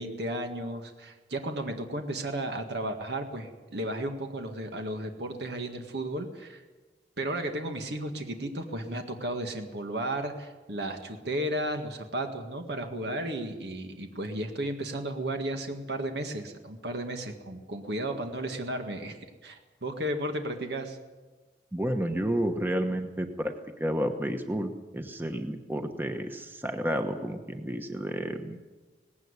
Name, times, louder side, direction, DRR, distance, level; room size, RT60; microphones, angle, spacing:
voice 1, 0.0-6.6 7.2-21.0, right 1 dB, 75° right, 5 dB, 1.9 m, -34 dB
voice 2, 21.7-28.6, equal, 10° right, 6 dB, 1.1 m, -31 dB
19.0 x 16.5 x 9.8 m, 1.3 s
head